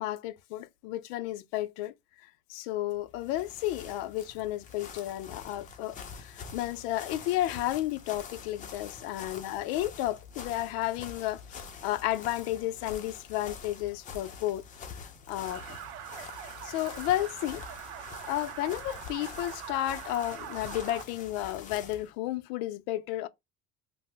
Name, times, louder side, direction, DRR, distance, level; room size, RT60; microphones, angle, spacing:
voice 1, 0.0-1.9 2.5-14.6 15.3-15.8 16.6-17.6 18.3-23.3, left 14 dB, 85° left, 0.5 m, -32 dB
sound 1, 3.0-22.1, left 6 dB, 25° left, 0.5 m, -46 dB
sound 2, 15.4-21.0, right 10 dB, 90° right, 0.5 m, -43 dB
2.8 x 2.0 x 3.2 m
cardioid pair, 135°, 29 cm